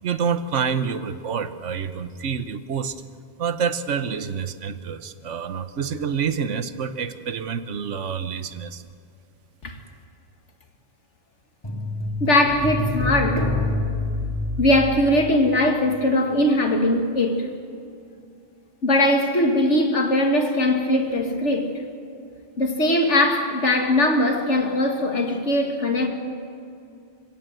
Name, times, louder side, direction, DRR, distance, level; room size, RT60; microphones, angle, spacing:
voice 1, 0.0-3.0 3.4-8.8, right 6 dB, 85° right, 1.3 m, -27 dB
sound 1, 11.6-16.1 16.3-16.5, left 1 dB, 20° left, 1.9 m, -27 dB
voice 2, 12.2-13.5 14.6-17.5 18.8-21.7 22.6-26.1, left 1 dB, 75° left, 2.3 m, -20 dB
29.0 x 16.5 x 7.9 m
omnidirectional pair, 1.2 m